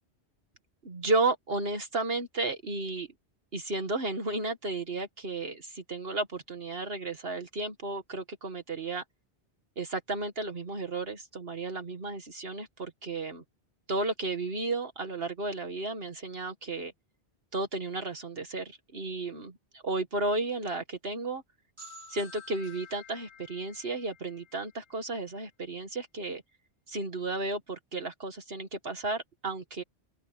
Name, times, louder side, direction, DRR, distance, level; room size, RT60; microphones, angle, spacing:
voice 1, 0.8-3.1 3.5-9.0 9.8-13.4 13.9-16.9 17.5-21.4 22.1-26.4 26.9-29.8, right 2 dB, 60° right, 1.8 m, -33 dB
sound 1, 21.8-25.4, left 3 dB, 25° right, 4.4 m, -51 dB
open air
omnidirectional pair, 1.1 m